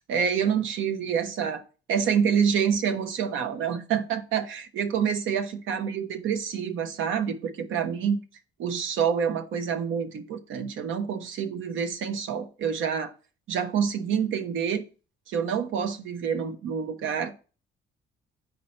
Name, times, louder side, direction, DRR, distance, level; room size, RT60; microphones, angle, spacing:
voice 1, 0.1-1.6 1.9-8.2 8.6-13.1 13.5-14.8 15.3-17.3, right 7 dB, 80° right, 1.0 m, -27 dB
9.2 x 4.3 x 4.4 m
cardioid pair, 90°, 20 cm